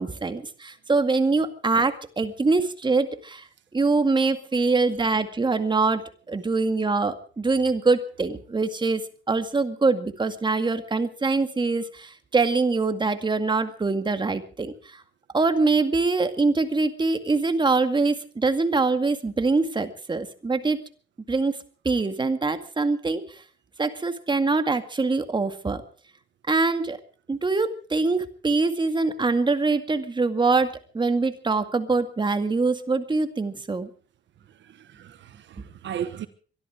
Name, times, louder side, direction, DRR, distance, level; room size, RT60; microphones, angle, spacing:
voice 1, 0.0-3.5 3.7-9.0 9.3-15.0 15.3-20.8 21.3-21.6 21.8-23.4 23.8-25.8 26.5-27.0 27.3-33.9, right 3 dB, 25° right, 2.0 m, -24 dB
voice 2, 34.4-36.3, right 9 dB, 65° right, 1.3 m, -36 dB
23.0 x 12.5 x 4.9 m
cardioid pair, 90°, 20 cm